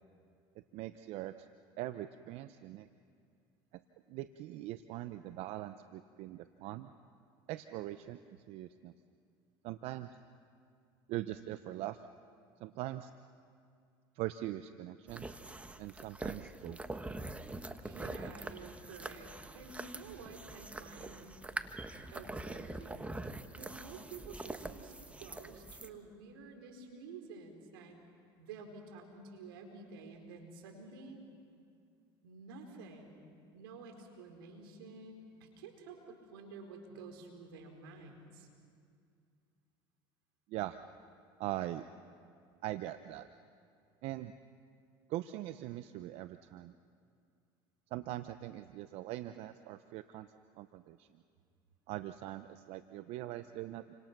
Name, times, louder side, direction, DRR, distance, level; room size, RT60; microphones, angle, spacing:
voice 1, 0.7-1.3 1.8-2.9 4.1-6.9 7.5-8.9 9.6-10.1 11.1-12.0 12.6-13.1 14.2-15.2 15.8-16.8 40.5-40.8 41.4-41.9 42.6-43.3 44.0-44.3 45.1-46.7 47.9-50.3 50.6-51.1 51.9-54.0, right 15 dB, 60° right, 11 dB, 0.8 m, -41 dB
sound 1, 15.1-25.9, right 2 dB, 10° right, 1.3 m, -44 dB
voice 2, 17.8-21.4 22.1-28.0 28.4-31.2 32.2-33.2 33.5-38.5, right 4 dB, 85° right, 3 dB, 4.4 m, -51 dB
30.0 x 26.0 x 6.1 m, 2.3 s
supercardioid pair, 95°, 12 cm